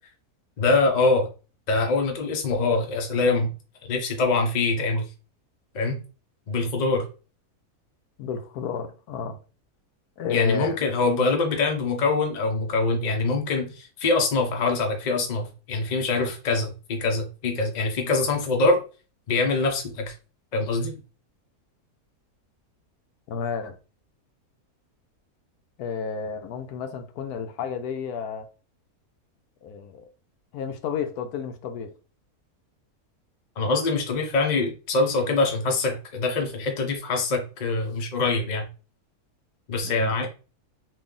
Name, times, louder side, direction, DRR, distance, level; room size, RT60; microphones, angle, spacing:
voice 1, 0.6-1.3 1.7-3.5 3.8-5.1 5.7-6.0 6.5-7.0 10.3-18.8 19.3-20.1 20.5-20.9 33.6-38.7 39.7-40.3, left 3 dB, 40° left, 0.6 m, -24 dB
voice 2, 8.2-9.4 10.2-10.8 23.3-23.7 25.8-28.5 29.6-30.1 30.5-31.9 39.8-40.1, left 6 dB, 80° left, 1.1 m, -31 dB
3.2 x 2.5 x 3.6 m
omnidirectional pair, 1.6 m